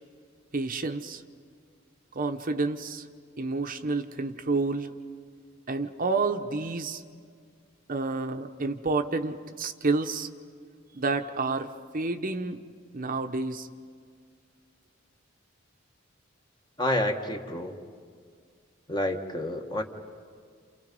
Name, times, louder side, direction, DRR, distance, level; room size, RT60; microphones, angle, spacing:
voice 1, 0.5-1.2 2.1-3.1 3.4-4.9 5.7-7.0 7.9-10.3 10.9-12.6 12.9-13.7, right 3 dB, 45° right, 7 dB, 0.9 m, -29 dB
voice 2, 16.8-17.7 18.9-19.8, left 1 dB, 20° left, 5 dB, 1.4 m, -29 dB
29.5 x 29.0 x 5.3 m, 2.1 s
head